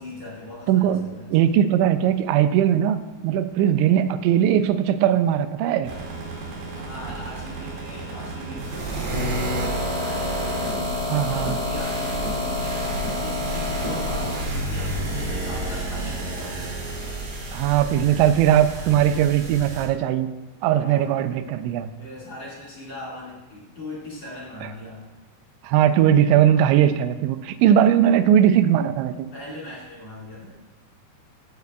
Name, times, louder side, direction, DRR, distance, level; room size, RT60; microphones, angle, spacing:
voice 1, 0.0-1.3 6.7-9.1 9.3-16.8 20.8-21.1 22.0-25.1 29.3-30.5, left 1 dB, 45° left, -7 dB, 2.8 m, -40 dB
voice 2, 0.7-5.9 11.1-11.6 17.5-20.3 20.6-21.9 25.6-29.3, right 10 dB, 85° right, 11 dB, 2.9 m, -19 dB
sound 1, 5.8-19.8, equal, 65° right, 4.2 m, -29 dB
16.0 x 8.1 x 2.4 m, 1.1 s
omnidirectional pair, 5.3 m